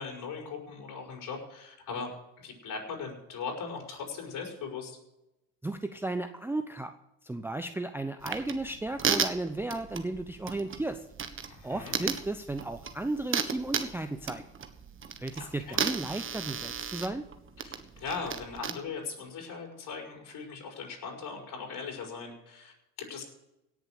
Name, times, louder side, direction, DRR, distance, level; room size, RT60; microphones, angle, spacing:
voice 1, 0.0-2.1 2.4-5.0 11.5-12.0 15.4-15.9 17.6-23.2, left 5 dB, 45° left, 1 dB, 5.3 m, -39 dB
voice 2, 5.6-7.0 7.2-11.1 11.6-14.5 15.2-17.2, right 2 dB, 5° right, 8 dB, 0.7 m, -34 dB
sound 1, 8.2-18.7, right 6 dB, 25° right, 1.5 m, -35 dB
17.5 x 7.2 x 6.6 m, 0.90 s
hypercardioid pair, 85°, 45 cm